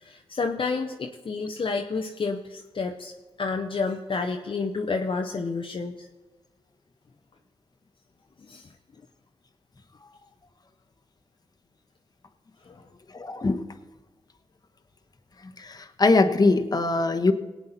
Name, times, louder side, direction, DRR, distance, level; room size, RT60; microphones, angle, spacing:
voice 1, 0.0-3.1 3.4-6.1 8.5-8.7 12.7-12.8, left 4 dB, 50° left, 3 dB, 0.9 m, -30 dB
voice 2, 13.2-13.6 16.0-17.3, left 3 dB, 35° left, 6 dB, 1.2 m, -21 dB
18.5 x 8.5 x 4.2 m, 1.2 s
supercardioid pair, 50°, 11 cm